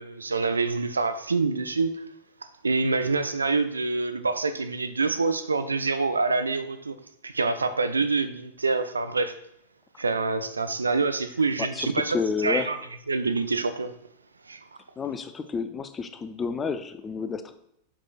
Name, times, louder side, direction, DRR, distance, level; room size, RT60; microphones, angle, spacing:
voice 1, 0.0-2.0 2.6-7.0 7.2-9.4 10.0-12.2 12.4-12.8 13.1-13.9 14.5-14.6, right 3 dB, 75° right, 0.4 m, -26 dB
voice 2, 11.6-12.7 15.0-17.5, left 5 dB, 20° left, 0.5 m, -30 dB
7.6 x 6.0 x 2.3 m
figure-of-eight pair, 90°, 0 cm